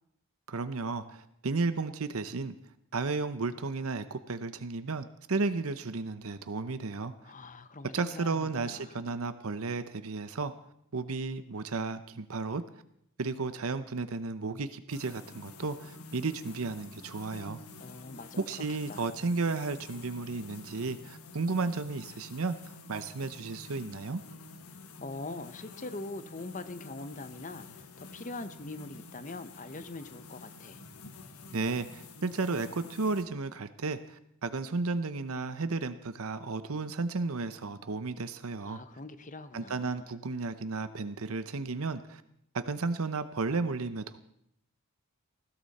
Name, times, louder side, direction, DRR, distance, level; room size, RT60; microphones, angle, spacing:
voice 1, 0.5-2.6 2.9-7.3 7.9-10.5 10.9-12.6 13.2-17.6 18.4-24.2 31.5-38.8 39.5-42.2 42.5-44.2, right 3 dB, 70° right, 11 dB, 0.8 m, -33 dB
voice 2, 7.2-9.3 17.8-19.1 24.7-30.8 38.6-40.1, left 2 dB, 35° left, 11 dB, 0.9 m, -43 dB
sound 1, 14.9-33.2, left 3 dB, 80° left, 1.4 m, -49 dB
20.0 x 16.0 x 4.2 m, 0.74 s
head